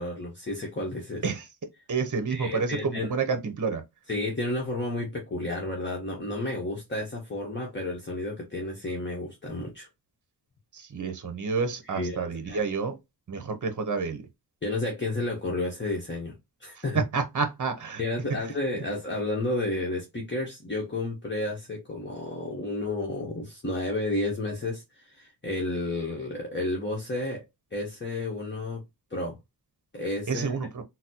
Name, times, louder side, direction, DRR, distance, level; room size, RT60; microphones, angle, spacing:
voice 1, 0.0-1.2 2.3-3.1 4.1-9.9 11.8-12.6 14.6-16.3 16.6-17.0 18.0-27.4 27.7-28.8 29.1-29.4 29.9-30.6, left 2 dB, 25° left, 0.9 m, -31 dB
voice 2, 1.9-3.8 10.7-12.9 13.3-14.2 16.9-18.0 18.7-18.8 30.3-30.8, right 5 dB, 45° right, 0.8 m, -29 dB
3.9 x 2.0 x 2.8 m
wide cardioid pair, 80°, 41 cm